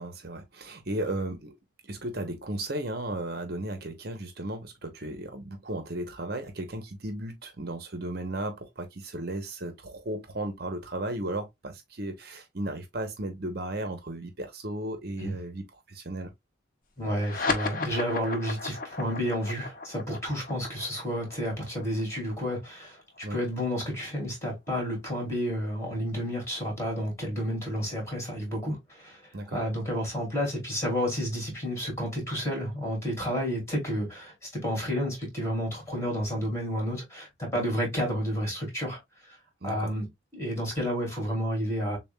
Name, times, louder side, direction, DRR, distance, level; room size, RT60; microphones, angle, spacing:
voice 1, 0.0-1.6 1.8-16.3 23.2-23.4 29.3-29.6 37.5-37.7 39.6-40.0, right 1 dB, 50° right, 0.9 m, -35 dB
voice 2, 17.0-23.0 23.3-29.2 29.5-39.0 39.3-39.4 39.6-40.1 40.3-42.0, equal, 15° left, 2.6 m, -31 dB
sound 1, 17.2-24.0, left 4 dB, 45° left, 0.9 m, -35 dB
6.9 x 2.4 x 2.2 m
head